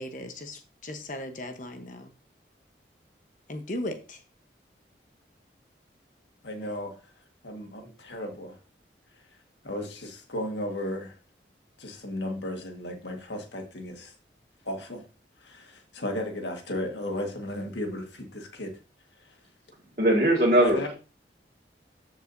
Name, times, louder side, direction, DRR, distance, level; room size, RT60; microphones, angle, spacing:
voice 1, 0.0-2.1 3.5-4.2, left 1 dB, 45° left, 7 dB, 1.0 m, -37 dB
voice 2, 6.4-7.0 7.4-8.6 9.6-11.2 11.8-14.1 14.6-15.0 15.4-18.8 20.6-20.9, left 1 dB, 80° left, 3 dB, 1.7 m, -34 dB
voice 3, 20.0-20.9, right 1 dB, 45° right, -4 dB, 2.0 m, -20 dB
14.0 x 4.9 x 2.7 m, 0.32 s
head